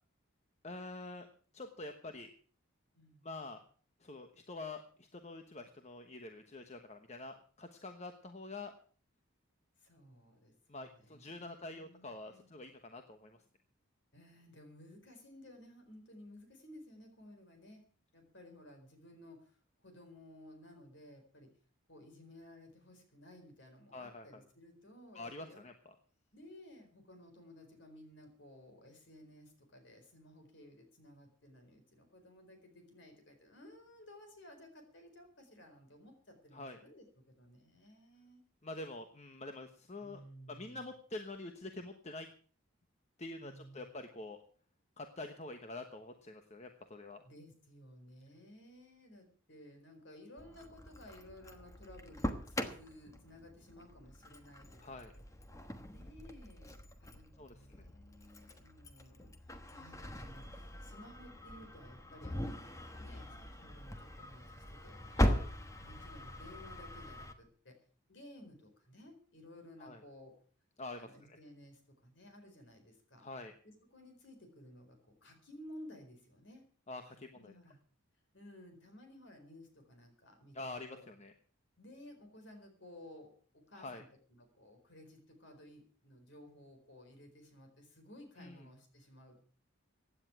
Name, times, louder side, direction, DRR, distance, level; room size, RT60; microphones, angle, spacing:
voice 1, 0.6-1.3 1.5-2.3 3.2-3.6 4.0-8.7 10.7-13.4 23.9-24.4 25.1-25.7 36.5-36.8 38.6-40.2 40.5-42.3 43.2-44.4 45.0-47.2 54.8-55.1 57.4-57.9 65.1-65.5 69.8-70.0 70.8-71.4 73.2-73.5 76.9-77.5 80.5-81.3 83.7-84.0 88.4-88.6, left 2 dB, 30° left, 6 dB, 1.1 m, -46 dB
voice 2, 9.8-12.5 14.1-17.9 18.1-21.5 21.9-25.6 26.3-38.4 40.0-40.9 43.4-43.9 47.2-55.2 55.9-62.7 63.0-65.5 65.8-67.8 68.1-70.3 71.0-73.3 73.6-76.6 77.1-77.8 78.3-81.1 81.8-89.4, left 1 dB, 55° left, 5 dB, 4.3 m, -56 dB
Engine starting, 50.4-67.3, equal, 15° left, 1.2 m, -41 dB
16.0 x 9.9 x 6.0 m, 0.43 s
head